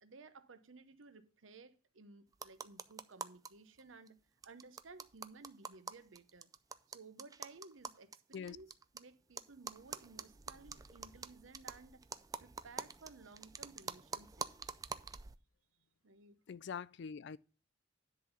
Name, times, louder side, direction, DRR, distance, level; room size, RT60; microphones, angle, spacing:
voice 1, 0.0-6.5 6.9-12.1 12.4-14.5 16.0-16.4, right 3 dB, 85° right, 0.8 m, -57 dB
sound 1, 2.3-3.5 3.8-3.9 4.1-4.2 4.4-9.0 9.4-15.4, right 5 dB, 20° right, 0.4 m, -46 dB
voice 2, 16.5-17.4, left 6 dB, 60° left, 0.4 m, -44 dB
10.0 x 3.9 x 6.8 m
head